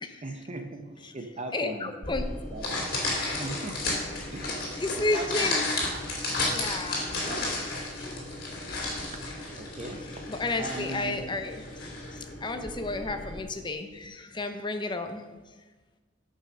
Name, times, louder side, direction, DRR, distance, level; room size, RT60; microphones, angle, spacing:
voice 1, 0.2-1.9 2.5-2.8 3.4-3.8 4.3-4.7 5.0-5.6 7.2-7.5 9.4-10.3 10.6-11.3, right 2 dB, 35° right, 6 dB, 0.9 m, -39 dB
voice 2, 1.5-2.2 4.8-5.6 6.4-7.0 8.0-8.2 8.7-8.8 10.3-11.6 12.4-15.3, left 2 dB, 25° left, 6 dB, 0.7 m, -32 dB
sound 1, 2.0-13.4, left 2 dB, 50° left, 2.8 m, -33 dB
9.4 x 5.6 x 6.4 m, 1.3 s
head